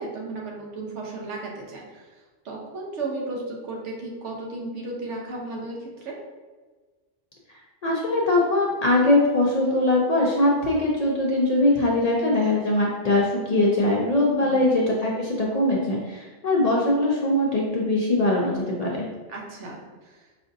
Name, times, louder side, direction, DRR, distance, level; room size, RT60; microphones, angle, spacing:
voice 1, 0.0-2.1 2.4-6.1 14.4-14.6 19.3-20.3, right 2 dB, 85° right, -2 dB, 1.2 m, -34 dB
voice 2, 7.5-19.1, left 2 dB, 50° left, -3 dB, 0.4 m, -22 dB
4.9 x 2.6 x 2.5 m, 1.3 s
omnidirectional pair, 1.2 m